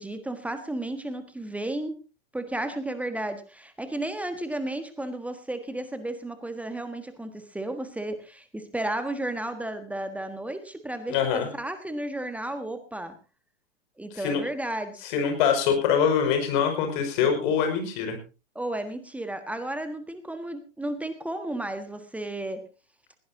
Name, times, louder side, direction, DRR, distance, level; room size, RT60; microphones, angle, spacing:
voice 1, 0.0-2.0 2.3-13.1 14.0-15.0 18.5-22.6, right 1 dB, 5° right, 9 dB, 1.5 m, -33 dB
voice 2, 11.1-11.5 14.1-14.4 15.0-18.2, left 7 dB, 40° left, 6 dB, 5.6 m, -24 dB
20.5 x 16.5 x 2.7 m, 0.31 s
figure-of-eight pair, 110°, 35 cm